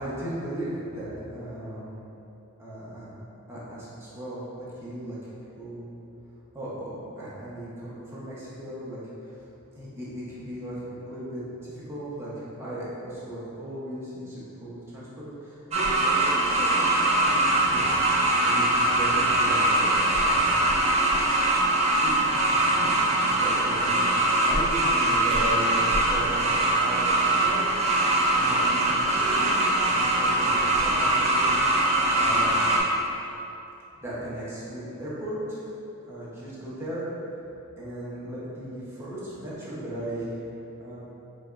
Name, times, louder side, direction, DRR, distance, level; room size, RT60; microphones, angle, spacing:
voice 1, 0.0-1.9 2.6-3.2 3.5-5.2 5.6-5.9 6.5-9.4 9.7-16.9 17.2-18.6 19.0-20.7 22.0-23.0 23.4-26.5 26.8-27.1 27.4-27.7 28.0-31.6 32.2-32.7 33.9-35.7 36.1-37.0 37.8-40.4 40.8-41.0, right 1 dB, 10° right, -9 dB, 0.8 m, -36 dB
sound 1, 15.7-32.8, right 2 dB, 30° right, 0.3 m, -22 dB
4.9 x 2.3 x 2.5 m, 2.9 s
head